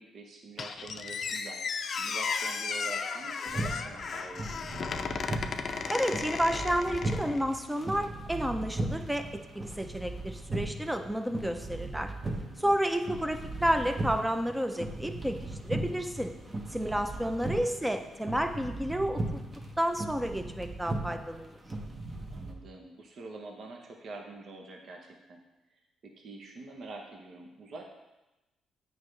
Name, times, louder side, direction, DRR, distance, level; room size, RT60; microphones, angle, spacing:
voice 1, 0.0-1.6 1.9-4.8 12.3-12.7 16.9-17.3 22.3-25.4 25.7-27.8, right 3 dB, 55° right, 2 dB, 0.9 m, -46 dB
Squeak, 0.6-7.5, left 5 dB, 50° left, 0.5 m, -35 dB
sound 1, 3.5-22.5, right 2 dB, 25° right, 0.9 m, -38 dB
voice 2, 5.9-12.1 12.6-15.4 15.6-16.3 16.7-19.4 19.8-21.5, equal, 5° right, 6 dB, 0.6 m, -31 dB
8.3 x 5.1 x 3.2 m, 1.0 s
cardioid pair, 90°, 0 cm